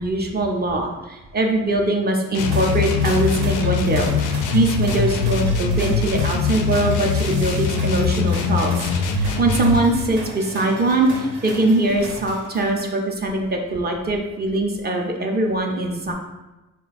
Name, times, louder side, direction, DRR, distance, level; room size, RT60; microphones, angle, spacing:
voice 1, 0.0-16.1, right 2 dB, 30° right, 1 dB, 0.5 m, -22 dB
sound 1, 2.3-9.8, left 5 dB, 85° left, 0.5 m, -22 dB
sound 2, 2.4-12.9, right 2 dB, 70° right, 0.9 m, -35 dB
3.9 x 2.2 x 4.0 m, 1.1 s
cardioid pair, 90°, 30 cm